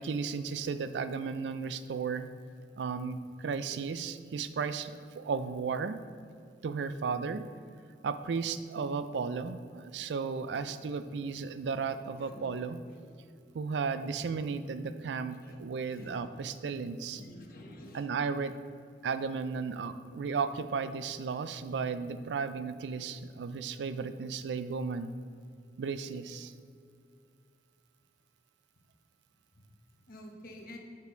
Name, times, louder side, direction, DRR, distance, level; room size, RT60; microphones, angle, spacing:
voice 1, 0.0-2.3 2.8-6.0 6.6-7.4 8.0-12.8 13.5-17.2 17.9-18.5 19.0-25.2 25.8-26.5, right 5 dB, 85° right, 12 dB, 0.4 m, -34 dB
voice 2, 12.0-12.7 13.0-13.1 13.4-13.6 14.0-14.3 14.7-14.8 15.1-16.2 16.6-16.8 17.1-18.1 19.1-19.2 29.5-30.8, left 1 dB, 55° left, 2 dB, 1.0 m, -52 dB
6.1 x 5.8 x 4.5 m, 2.3 s
head